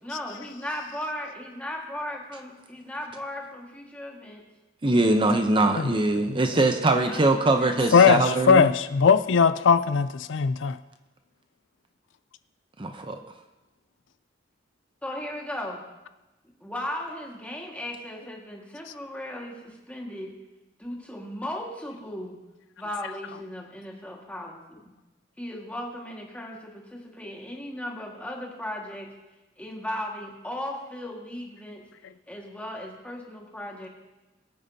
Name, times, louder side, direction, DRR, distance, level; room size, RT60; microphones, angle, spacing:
voice 1, 0.0-4.4 6.8-8.7 15.0-15.8 16.4-20.4 20.8-22.4 22.8-24.9 25.4-29.1 29.6-31.8 32.3-33.9, left 1 dB, 10° left, -1 dB, 1.8 m, -36 dB
voice 2, 4.8-8.7 12.8-13.2, right 2 dB, 25° right, 6 dB, 0.7 m, -22 dB
voice 3, 7.9-10.8, left 6 dB, 80° left, 13 dB, 0.4 m, -19 dB
22.0 x 9.0 x 2.8 m, 1.1 s
head